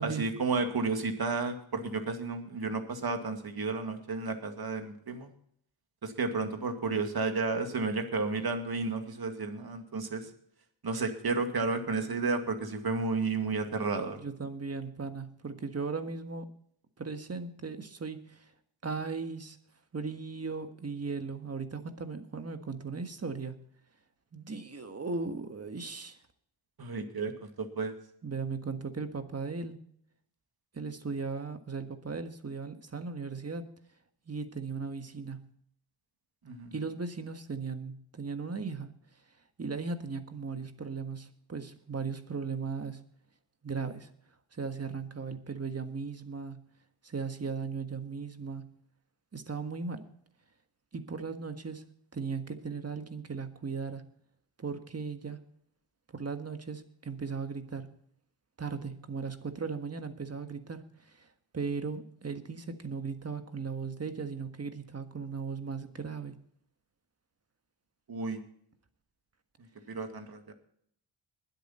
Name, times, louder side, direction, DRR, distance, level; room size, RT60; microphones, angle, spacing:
voice 1, 0.0-5.3 6.0-10.3 10.8-14.2 26.8-27.9 36.4-36.7 68.1-68.4 69.9-70.5, right 3 dB, 50° right, 6 dB, 2.3 m, -32 dB
voice 2, 14.1-16.4 17.0-18.5 18.8-19.6 19.9-23.6 24.3-26.2 28.2-29.8 30.7-33.6 34.3-35.5 36.7-38.9 39.6-43.0 43.6-44.1 44.5-46.6 47.0-48.7 49.3-50.0 50.9-51.8 52.1-54.0 54.6-55.4 56.1-57.9 58.6-60.8 61.1-61.3 61.5-66.3, right 4 dB, 30° right, 8 dB, 1.6 m, -37 dB
21.5 x 8.2 x 4.3 m, 0.66 s
wide cardioid pair, 100°, 48 cm